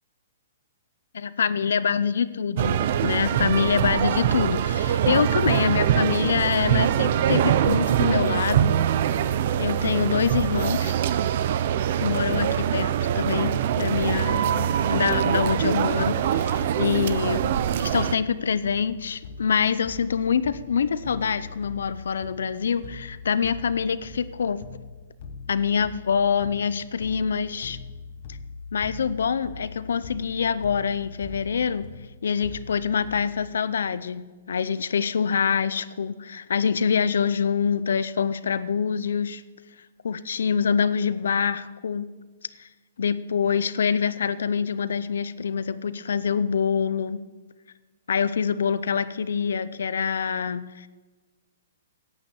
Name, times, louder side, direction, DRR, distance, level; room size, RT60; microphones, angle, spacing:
voice 1, 1.1-8.8 9.6-10.9 12.0-17.5 17.8-24.6 25.5-27.8 28.7-31.9 32.2-39.4 40.0-42.1 42.6-42.7 43.0-47.2 48.1-50.9, left 6 dB, 80° left, 15 dB, 0.6 m, -25 dB
sound 1, 2.6-18.2, right 10 dB, 45° right, 0.5 m, -23 dB
sound 2, 14.4-33.5, left 4 dB, 50° left, 1.3 m, -42 dB
10.5 x 8.8 x 8.1 m, 1.3 s
hypercardioid pair, 160°, 0 cm